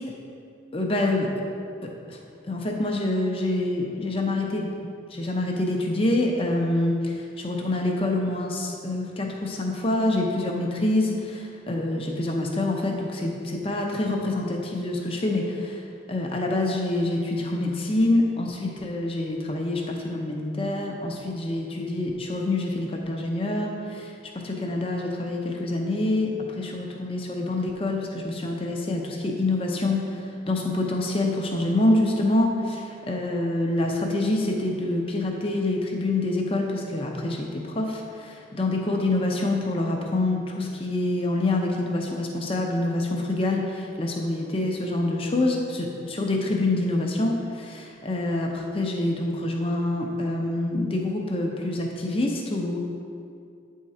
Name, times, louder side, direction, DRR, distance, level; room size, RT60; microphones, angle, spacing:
voice 1, 0.7-1.3 2.1-2.2 2.4-4.7 5.1-15.8 16.1-52.8, left 2 dB, 30° left, 1 dB, 0.7 m, -26 dB
8.9 x 3.7 x 4.2 m, 2.4 s
head